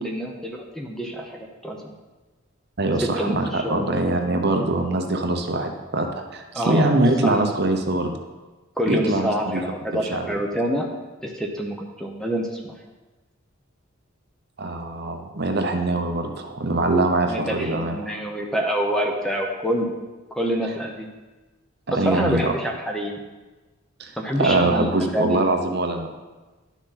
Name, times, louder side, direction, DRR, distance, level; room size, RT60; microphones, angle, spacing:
voice 1, 0.0-1.9 3.0-3.9 6.5-6.9 7.2-7.3 8.8-10.9 11.2-12.7 17.2-19.9 20.3-21.1 21.9-23.2 24.2-25.4, equal, ahead, 1 dB, 0.7 m, -27 dB
voice 2, 2.8-8.2 8.9-9.6 10.1-10.3 14.6-18.1 21.9-22.5 24.0-24.1 24.4-26.1, right 2 dB, 50° right, 4 dB, 0.8 m, -23 dB
11.0 x 6.1 x 4.1 m, 1.2 s
head